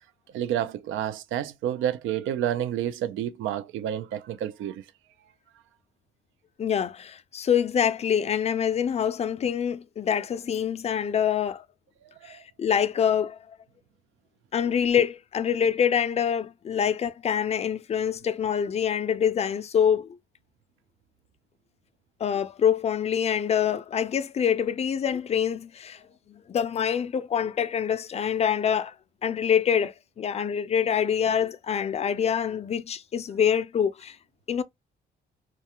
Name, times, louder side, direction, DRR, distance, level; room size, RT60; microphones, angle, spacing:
voice 1, 0.3-4.8 12.2-12.4, right 11 dB, 80° right, 0.4 m, -29 dB
voice 2, 6.6-11.6 12.2-13.4 14.5-20.1 22.2-26.0 26.3-28.9 29.2-34.2 34.5-34.6, left 8 dB, 35° left, 0.3 m, -25 dB
2.4 x 2.2 x 2.8 m
cardioid pair, 90°, 20 cm